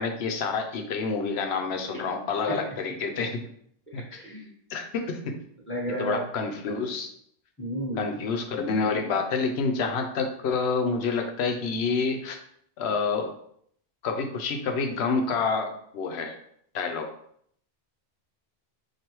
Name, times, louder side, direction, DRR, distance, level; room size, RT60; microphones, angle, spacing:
voice 1, 0.0-3.4 3.9-4.0 4.7-5.3 6.0-7.1 8.0-12.4 12.8-13.3 14.0-16.4 16.7-17.1, left 4 dB, 85° left, 4 dB, 0.9 m, -28 dB
voice 2, 3.9-4.5 5.7-6.2 7.6-8.2, right 1 dB, 10° left, -7 dB, 1.5 m, -32 dB
4.8 x 2.6 x 3.0 m, 0.68 s
omnidirectional pair, 1.1 m